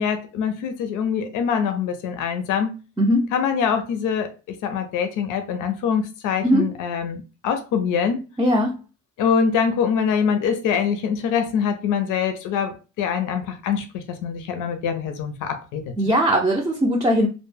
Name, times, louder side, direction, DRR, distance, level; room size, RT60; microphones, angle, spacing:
voice 1, 0.0-2.8 3.3-8.2 9.2-15.8, left 7 dB, 85° left, 0.5 m, -24 dB
voice 2, 3.0-3.3 6.4-6.7 8.4-8.7 16.0-17.3, equal, 10° right, 0.4 m, -19 dB
2.1 x 2.0 x 3.2 m
cardioid pair, 90°, 30 cm